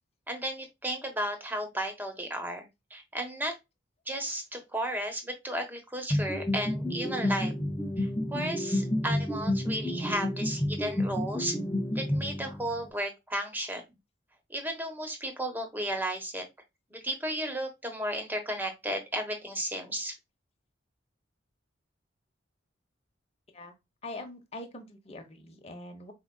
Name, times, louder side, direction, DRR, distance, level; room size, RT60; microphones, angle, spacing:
voice 1, 0.3-3.6 4.1-7.5 8.0-11.6 11.9-13.8 14.5-16.4 16.9-20.2, right 1 dB, 10° right, 1.1 m, -34 dB
sound 1, 6.1-12.8, left 1 dB, 10° left, 0.7 m, -30 dB
voice 2, 24.0-26.1, left 2 dB, 35° left, 1.0 m, -43 dB
4.9 x 3.8 x 2.3 m
head